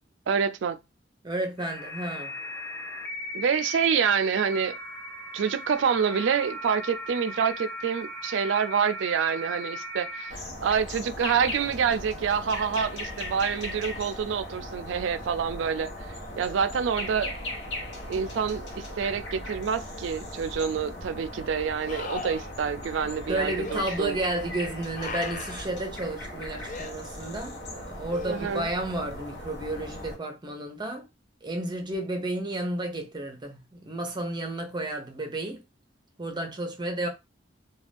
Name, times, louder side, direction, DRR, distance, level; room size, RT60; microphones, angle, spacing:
voice 1, 0.3-0.8 3.3-4.8 5.3-15.9 16.4-17.3 18.1-24.2 28.3-28.7, right 7 dB, 80° right, 0.4 m, -27 dB
voice 2, 1.2-2.3 23.3-31.0 31.4-35.6 36.2-37.1, right 1 dB, 25° right, 0.6 m, -32 dB
sound 1, 1.6-10.3, equal, 10° left, 0.7 m, -37 dB
sound 2, 10.3-30.2, left 1 dB, 75° left, 0.8 m, -38 dB
sound 3, 20.3-20.4 21.9-22.5 23.6-23.9 24.9-25.7 26.7-26.9 28.1-28.8 31.9-32.0, left 4 dB, 45° left, 0.4 m, -38 dB
2.5 x 2.3 x 3.4 m
head